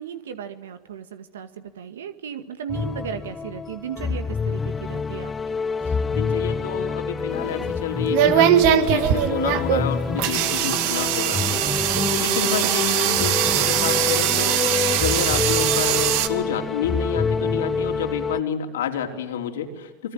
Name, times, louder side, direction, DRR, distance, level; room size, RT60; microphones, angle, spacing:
voice 1, 0.0-5.3, right 8 dB, 85° right, 10 dB, 1.9 m, -35 dB
sound 1, 2.7-18.4, left 5 dB, 20° left, 0.8 m, -27 dB
voice 2, 5.8-20.1, left 7 dB, 85° left, 3 dB, 4.0 m, -29 dB
sound 2, 7.3-16.3, right 11 dB, 65° right, 2.1 m, -21 dB
26.0 x 24.0 x 9.0 m, 1.2 s
hypercardioid pair, 95°, 0 cm